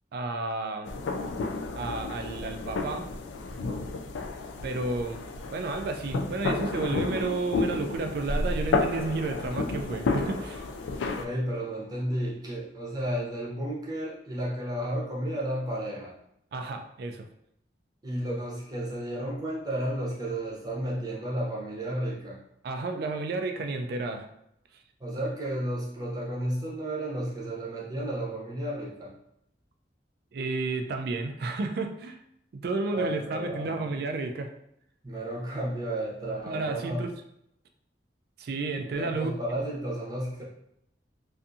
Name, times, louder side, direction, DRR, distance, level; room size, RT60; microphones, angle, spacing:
voice 1, 0.1-0.9 1.8-3.1 4.6-10.6 16.5-17.3 22.6-24.3 30.3-32.2 32.5-34.5 36.5-37.1 38.4-39.3, right 3 dB, 60° right, 5 dB, 0.3 m, -31 dB
sound 1, 0.9-11.3, left 3 dB, 90° left, 0.3 m, -31 dB
voice 2, 11.2-16.1 18.0-22.4 25.0-29.1 32.9-33.9 35.0-37.0 38.8-40.4, right 1 dB, 20° right, -5 dB, 0.7 m, -32 dB
2.5 x 2.3 x 2.6 m, 0.76 s
head